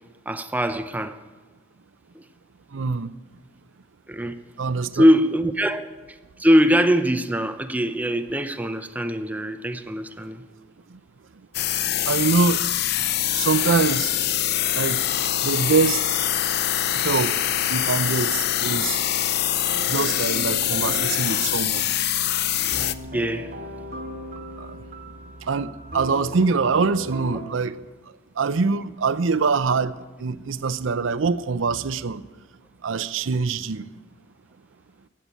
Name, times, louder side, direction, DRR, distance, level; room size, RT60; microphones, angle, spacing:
voice 1, 0.3-1.2 2.1-2.2 4.1-4.4 4.9-10.4 15.2-15.5 23.1-23.5, equal, 10° right, 0.6 m, -22 dB
voice 2, 2.7-3.1 4.6-5.0 10.9-11.0 12.1-12.6 13.0-13.1 13.4-14.1 14.7-15.0 15.4-16.2 16.9-17.4 17.7-19.0 19.9-21.8 24.6-24.8 25.4-27.8 28.4-32.2 32.8-33.9, right 4 dB, 90° right, 0.6 m, -24 dB
sound 1, 11.5-22.9, left 11 dB, 55° left, 0.5 m, -24 dB
sound 2, 19.7-27.4, equal, 45° right, 2.2 m, -37 dB
15.0 x 8.7 x 9.1 m
head